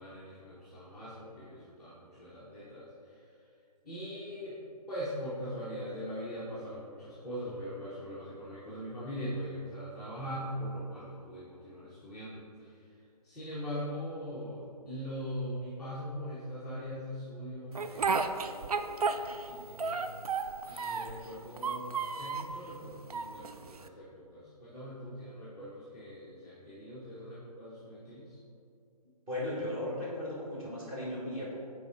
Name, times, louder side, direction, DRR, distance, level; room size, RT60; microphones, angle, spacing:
voice 1, 0.0-3.2 3.8-4.6 4.9-12.8 13.2-20.1 20.7-28.4, equal, ahead, -14 dB, 0.6 m, -41 dB
Speech, 17.8-19.5 19.8-21.2 21.6-22.6 23.1-23.9, right 5 dB, 65° right, 0.4 m, -32 dB
voice 2, 29.3-31.6, left 1 dB, 15° right, -7 dB, 1.3 m, -36 dB
5.1 x 4.4 x 4.9 m, 2.5 s
figure-of-eight pair, 145°, 21 cm